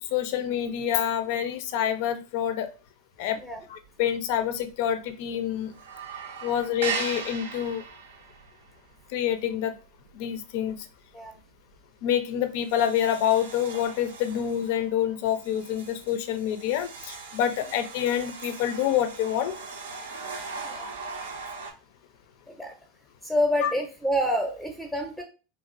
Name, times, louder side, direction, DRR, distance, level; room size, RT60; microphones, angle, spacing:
voice 1, 0.1-2.7 3.2-3.4 3.7-5.7 6.4-7.8 9.1-9.7 10.1-10.9 12.0-19.6 20.3-20.4 23.6-23.7, left 10 dB, 60° left, 9 dB, 0.4 m, -27 dB
sound 1, 3.5-4.0 4.3-4.4 4.7-5.3 5.6-10.9 11.2-11.5 12.0-12.1 12.6-21.7, right 5 dB, 75° right, 0.5 m, -39 dB
voice 2, 23.2-25.2, equal, ahead, 1 dB, 0.6 m, -28 dB
2.9 x 2.4 x 2.4 m, 0.33 s
hypercardioid pair, 90°, 0 cm